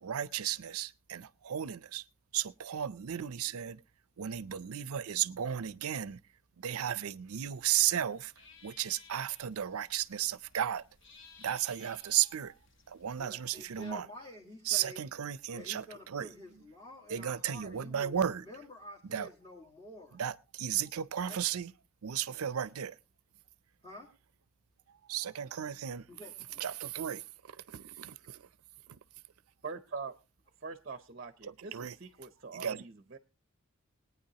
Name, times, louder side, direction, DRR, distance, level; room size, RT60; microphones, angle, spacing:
voice 1, 0.0-2.0 2.3-3.8 4.2-6.2 6.6-8.3 8.6-10.8 11.4-12.6 12.9-14.1 14.7-16.3 17.1-18.5 19.0-19.3 20.1-21.7 22.0-22.9 24.9-26.1 26.6-28.4 31.4-31.9 32.5-32.8, right 10 dB, 85° right, 0.5 m, -34 dB
sound 1, 7.4-13.9, left 5 dB, 55° left, 1.0 m, -59 dB
voice 2, 13.2-15.0 15.5-20.2 21.2-21.5 23.8-24.1 26.1-26.6, left 2 dB, 20° left, 1.6 m, -49 dB
voice 3, 29.6-30.1 30.6-33.2, right 4 dB, 40° right, 0.6 m, -43 dB
21.0 x 9.4 x 2.8 m
head